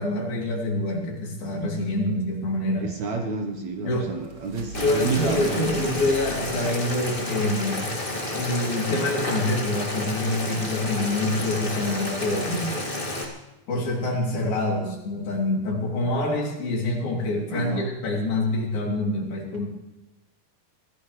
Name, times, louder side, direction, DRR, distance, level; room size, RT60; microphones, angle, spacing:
voice 1, 0.0-2.9 3.8-4.1 4.8-7.9 8.3-12.8 13.7-19.7, left 2 dB, 75° left, -1 dB, 4.7 m, -26 dB
voice 2, 2.8-5.7 17.5-18.0, right 4 dB, 65° right, 3 dB, 1.9 m, -29 dB
sound 1, 3.5-7.3, right 1 dB, 85° right, 0.8 m, -44 dB
Boiling, 4.7-13.2, left 1 dB, 20° left, 1.5 m, -30 dB
25.0 x 16.0 x 3.2 m, 0.99 s
omnidirectional pair, 4.2 m